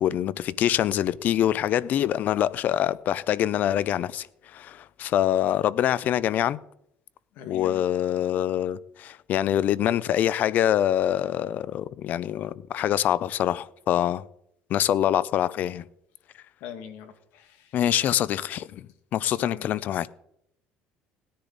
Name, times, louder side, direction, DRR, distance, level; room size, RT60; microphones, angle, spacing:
voice 1, 0.0-6.6 7.5-14.3 14.7-15.8 17.7-20.1, left 11 dB, 50° left, 0.5 m, -25 dB
voice 2, 7.3-7.8 16.6-17.8 19.2-19.8, left 8 dB, 75° left, 1.9 m, -42 dB
17.5 x 10.5 x 4.0 m
cardioid pair, 140°, 4 cm